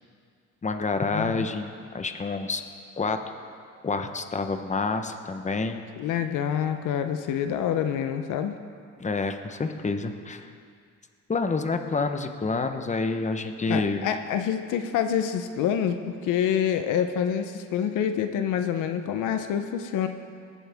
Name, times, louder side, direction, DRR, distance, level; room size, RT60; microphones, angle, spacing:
voice 1, 0.6-2.6 3.0-3.2 3.8-5.8 9.0-10.5 11.3-14.0, left 3 dB, 25° left, 7 dB, 1.0 m, -28 dB
voice 2, 1.1-1.5 5.9-8.6 13.7-20.1, left 9 dB, 90° left, 8 dB, 0.8 m, -27 dB
21.0 x 11.5 x 3.6 m, 2.3 s
cardioid pair, 90°, 30 cm